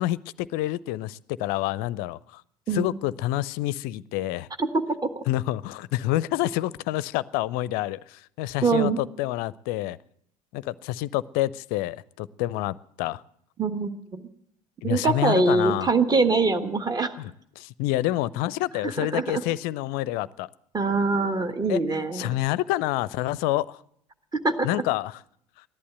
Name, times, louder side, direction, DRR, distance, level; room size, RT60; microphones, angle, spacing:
voice 1, 0.0-2.4 2.7-4.5 5.3-10.0 10.5-13.2 14.8-15.9 17.2-17.3 17.6-20.5 21.7-23.8 24.6-25.2, left 15 dB, 50° left, 21 dB, 0.5 m, -28 dB
voice 2, 4.6-5.1 8.6-9.0 13.6-14.2 14.8-17.1 18.8-19.4 20.7-22.3 24.4-24.8, right 3 dB, 20° right, 8 dB, 1.4 m, -24 dB
15.0 x 11.0 x 7.8 m, 0.69 s
figure-of-eight pair, 65°, 20 cm